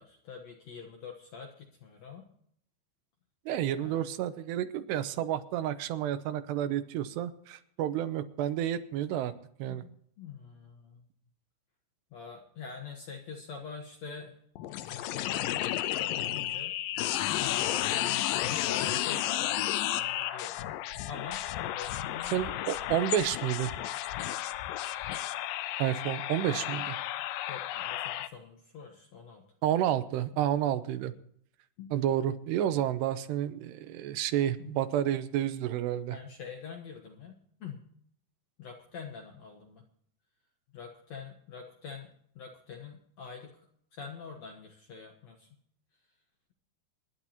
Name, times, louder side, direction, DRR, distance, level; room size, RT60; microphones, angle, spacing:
voice 1, 0.0-2.3 3.8-4.0 9.6-11.0 12.1-14.3 14.8-16.8 17.3-20.6 21.1-21.4 21.7-22.5 27.5-29.4 31.8-31.9 34.6-34.9 36.1-37.3 37.6-37.8 38.6-39.8 40.7-43.6 43.9-45.5, left 6 dB, 65° left, 2 dB, 1.8 m, -45 dB
voice 2, 3.5-9.3 9.6-9.8 22.3-23.7 25.8-27.0 29.6-31.1 31.9-36.2, right 11 dB, 90° right, 11 dB, 3.0 m, -30 dB
sound 1, 14.6-28.3, left 13 dB, 90° left, 2.0 m, -32 dB
25.5 x 11.0 x 2.9 m, 0.66 s
omnidirectional pair, 4.8 m